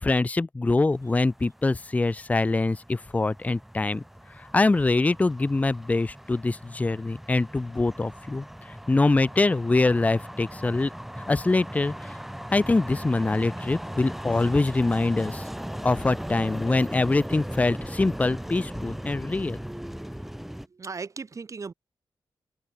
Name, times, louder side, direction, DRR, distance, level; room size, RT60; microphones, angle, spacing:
voice 1, 0.0-4.0 4.3-8.5 8.9-10.9 11.2-11.9 12.5-15.4 15.8-19.6, left 3 dB, 20° left, 0.6 m, -24 dB
sound 1, 0.9-20.7, equal, 5° right, 1.4 m, -38 dB
voice 2, 20.7-21.7, right 4 dB, 45° right, 6.9 m, -37 dB
open air
wide cardioid pair, 125°, 8 cm